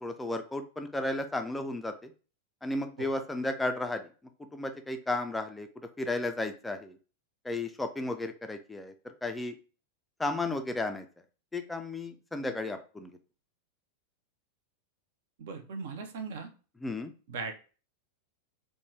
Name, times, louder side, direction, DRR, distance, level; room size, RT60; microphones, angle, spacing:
voice 1, 0.0-1.9 2.6-4.0 4.5-5.7 6.0-7.0 7.4-8.9 9.2-9.6 10.2-11.0 11.5-13.1 16.8-17.1, left 2 dB, 10° left, 7 dB, 0.3 m, -33 dB
voice 2, 15.4-16.5 17.3-17.5, right 4 dB, 55° right, 6 dB, 0.5 m, -38 dB
3.2 x 2.1 x 3.1 m, 0.36 s
figure-of-eight pair, 90°, 0 cm